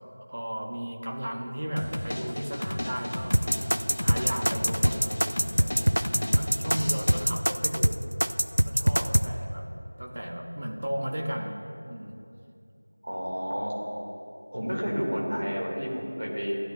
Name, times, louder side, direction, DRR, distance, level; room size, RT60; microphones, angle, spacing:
voice 1, 0.3-3.4 4.0-5.7 6.3-8.0 8.6-9.7 10.0-12.2, equal, 25° right, 1 dB, 0.6 m, -34 dB
sound 1, 1.8-7.2, left 1 dB, 30° left, 0.5 m, -34 dB
sound 2, 3.3-9.3, equal, 85° right, 0.4 m, -23 dB
voice 2, 13.0-13.7 14.5-16.5, equal, 60° right, -3 dB, 2.4 m, -30 dB
13.0 x 9.6 x 2.5 m, 2.6 s
figure-of-eight pair, 180°, 0 cm